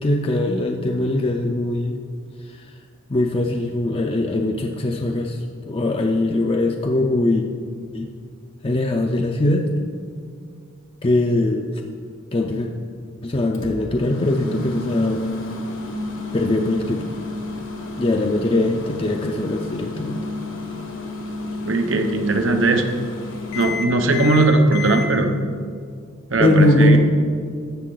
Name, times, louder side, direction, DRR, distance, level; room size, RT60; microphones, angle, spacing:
voice 1, 0.0-2.0 2.4-2.7 3.1-7.5 7.9-8.1 8.6-9.6 11.0-11.6 12.3-12.7 13.2-15.2 16.3-17.1 18.0-20.2 26.4-27.0, left 1 dB, 30° left, 2 dB, 0.5 m, -21 dB
Microwave oven, 13.5-25.1, left 2 dB, 75° left, 1.3 m, -31 dB
voice 2, 21.6-22.9 23.5-25.3 26.3-27.0, right 2 dB, 80° right, 5 dB, 1.0 m, -18 dB
12.5 x 8.0 x 3.9 m, 2.1 s
head